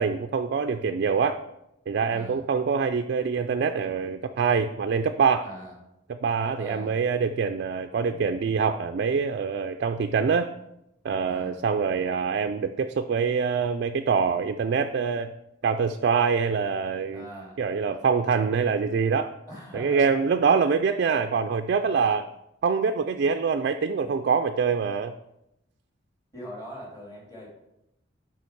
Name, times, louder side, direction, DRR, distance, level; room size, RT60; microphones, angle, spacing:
voice 1, 0.0-1.4 1.9-5.5 6.2-10.5 11.0-15.3 15.6-17.3 17.6-19.3 19.7-22.3 22.6-25.1, right 5 dB, 60° right, 7 dB, 0.3 m, -25 dB
voice 2, 2.1-2.4 5.4-5.7 6.4-7.0 8.1-8.3 11.2-11.6 17.1-17.6 19.5-20.1 26.3-27.5, equal, 20° left, -3 dB, 2.5 m, -41 dB
6.9 x 5.7 x 4.6 m, 0.84 s
head